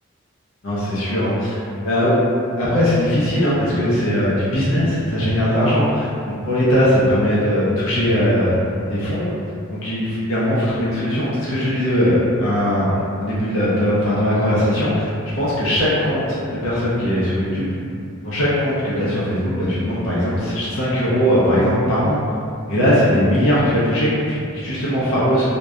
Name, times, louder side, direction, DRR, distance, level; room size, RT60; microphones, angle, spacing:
voice 1, 0.6-2.2 2.6-8.5 8.9-9.3 9.7-17.8 18.2-22.2 22.7-25.4, equal, 65° left, -9 dB, 0.5 m, -19 dB
2.6 x 2.1 x 2.2 m, 2.4 s
head